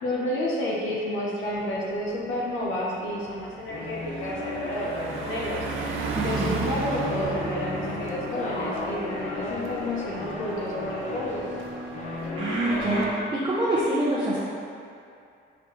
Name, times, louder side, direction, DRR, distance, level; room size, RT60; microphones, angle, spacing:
voice 1, 0.0-5.6 6.2-11.4, left 1 dB, 85° left, -4 dB, 0.8 m, -30 dB
Car passing by, 1.5-1.7 2.1-13.1, right 4 dB, 85° right, 0.5 m, -36 dB
sound 1, 3.7-13.2, left 2 dB, 35° left, 0.8 m, -34 dB
voice 2, 6.1-6.7 12.0-14.4, right 1 dB, 25° right, -8 dB, 0.7 m, -26 dB
4.2 x 4.1 x 3.0 m, 2.5 s
cardioid pair, 90°, 20 cm